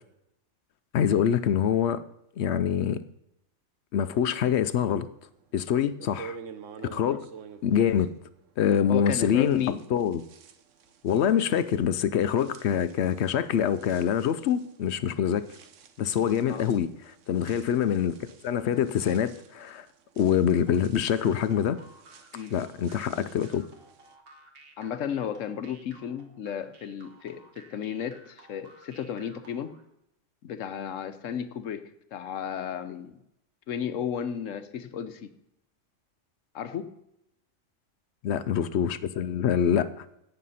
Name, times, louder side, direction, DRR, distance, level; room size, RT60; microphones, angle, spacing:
voice 1, 0.9-2.0 2.4-3.0 3.9-5.1 5.5-6.4 6.9-7.2 7.6-8.1 8.6-9.6 9.9-10.2 11.0-15.5 16.0-18.2 18.4-19.9 20.2-21.8 22.5-23.6 38.2-40.1, left 8 dB, 65° left, 14 dB, 0.8 m, -25 dB
sound 1, 5.4-5.5 6.0-9.1 9.4-24.1, right 6 dB, 80° right, 1.2 m, -50 dB
voice 2, 8.9-9.8 16.5-16.6 22.3-22.5 24.8-29.8 30.4-33.1 33.7-35.3 36.5-36.9, left 8 dB, 90° left, 11 dB, 1.2 m, -34 dB
sound 2, 20.7-29.8, right 2 dB, 50° right, 1.5 m, -55 dB
17.0 x 6.7 x 4.2 m, 0.83 s
omnidirectional pair, 1.3 m